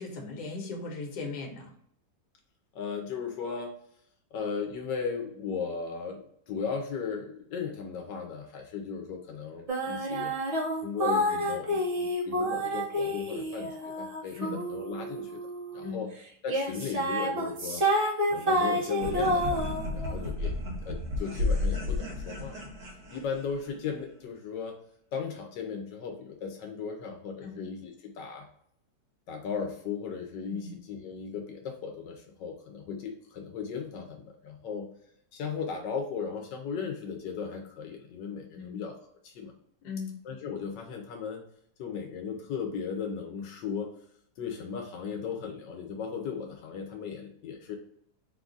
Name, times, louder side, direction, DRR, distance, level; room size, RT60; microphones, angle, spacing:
voice 1, 0.0-1.7 14.4-14.6 15.8-16.0 27.4-27.6 30.5-30.7 38.5-38.8 39.8-40.1, left 4 dB, 65° left, 1 dB, 1.5 m, -38 dB
voice 2, 2.7-3.7 4.3-10.3 10.8-15.4 15.7-16.1 16.4-17.9 18.3-22.6 23.1-24.8 25.1-28.5 29.3-34.9 35.3-39.0 39.2-39.5 40.2-41.4 41.8-43.9 44.4-47.8, left 6 dB, 90° left, 2 dB, 1.3 m, -36 dB
sound 1, 9.7-15.9 16.5-20.1, equal, 60° right, 0.3 m, -29 dB
sound 2, 19.0-23.8, left 2 dB, 75° right, 1.7 m, -32 dB
3.9 x 2.4 x 3.7 m, 0.67 s
omnidirectional pair, 1.9 m